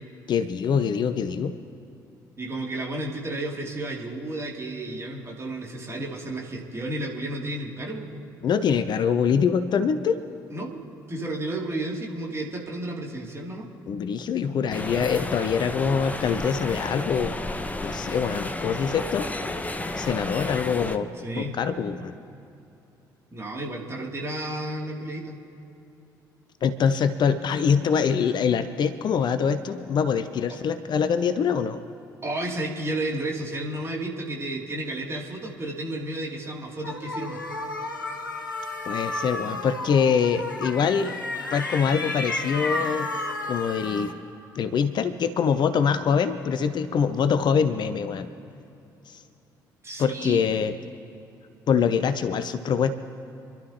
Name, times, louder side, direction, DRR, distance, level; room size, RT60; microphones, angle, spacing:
voice 1, 0.3-1.6 8.4-10.2 13.9-17.3 17.8-19.3 20.0-21.1 21.4-22.1 26.6-31.8 38.9-41.2 41.5-43.1 43.5-44.1 44.5-48.3 49.1-49.2 50.0-50.7 51.7-52.9, left 6 dB, 45° left, 11 dB, 0.7 m, -24 dB
voice 2, 2.4-8.2 10.5-10.8 11.1-13.7 21.2-21.5 23.3-25.4 32.2-37.4 49.8-50.4, right 1 dB, 25° right, -2 dB, 2.9 m, -32 dB
sound 1, 14.7-21.0, left 2 dB, 15° left, 1.0 m, -32 dB
sound 2, 36.8-44.1, left 2 dB, 85° left, 0.8 m, -32 dB
27.5 x 11.5 x 3.0 m, 2.7 s
figure-of-eight pair, 45°, 10 cm